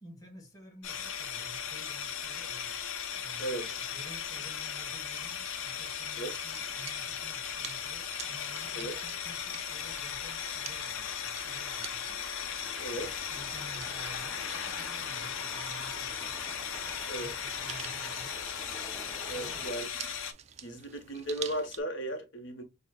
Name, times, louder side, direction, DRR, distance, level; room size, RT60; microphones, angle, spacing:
voice 1, 0.0-2.8 3.2-3.6 3.9-12.3 12.9-16.4 17.1-18.3 19.3-19.7, right 1 dB, 15° left, 1.4 m, -52 dB
sound 1, 0.8-20.3, left 7 dB, 80° left, 0.8 m, -37 dB
voice 2, 3.4-3.8 6.2-6.3 8.7-8.9 12.8-13.2 17.1-17.3 19.3-19.9 20.6-22.6, right 1 dB, 60° left, 1.1 m, -36 dB
sound 2, 5.0-21.8, right 8 dB, 30° right, 0.3 m, -49 dB
sound 3, 8.3-19.8, right 1 dB, ahead, 0.7 m, -50 dB
6.4 x 2.2 x 2.3 m
head